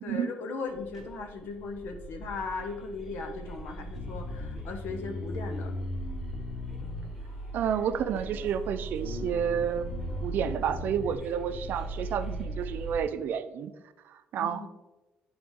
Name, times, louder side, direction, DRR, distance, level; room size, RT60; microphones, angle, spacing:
voice 1, 0.0-5.7 14.4-14.7, left 4 dB, 75° left, 5 dB, 1.1 m, -37 dB
sound 1, 0.7-13.0, right 3 dB, 5° right, 1.4 m, -40 dB
Bass guitar, 3.9-7.5 8.1-8.7 9.0-11.1, left 4 dB, 50° left, 0.5 m, -39 dB
voice 2, 7.5-9.9 10.2-13.7 14.3-14.7, right 8 dB, 65° right, 11 dB, 0.5 m, -30 dB
10.0 x 3.9 x 3.6 m, 1.1 s
cardioid pair, 125°, 3 cm